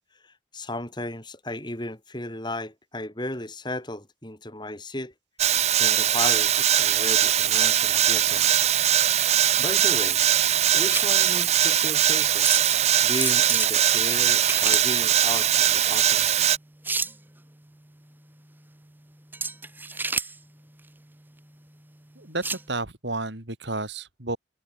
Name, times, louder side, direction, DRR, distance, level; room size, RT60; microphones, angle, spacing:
voice 1, 0.2-5.1 5.8-8.5 9.6-10.2 10.7-12.5 13.0-16.4, left 1 dB, 25° left, 5.4 m, -35 dB
sound 1, 5.4-16.6, right 11 dB, 35° right, 0.5 m, -21 dB
sound 2, 8.3-22.7, right 3 dB, 10° right, 1.3 m, -34 dB
voice 2, 22.2-24.4, right 2 dB, 75° right, 4.1 m, -31 dB
head